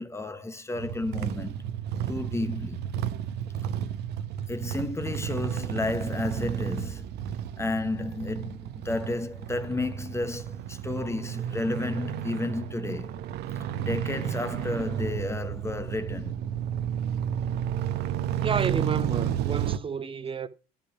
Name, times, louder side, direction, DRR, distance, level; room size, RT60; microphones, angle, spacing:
voice 1, 0.0-1.6 2.1-2.8 4.5-7.2 7.6-13.1 13.8-16.4, left 2 dB, 15° left, 0.9 m, -32 dB
sound 1, 0.7-19.8, right 9 dB, 55° right, 0.8 m, -32 dB
voice 2, 18.4-20.5, right 6 dB, 25° right, 0.7 m, -31 dB
9.9 x 5.5 x 5.8 m
hypercardioid pair, 80°, 20 cm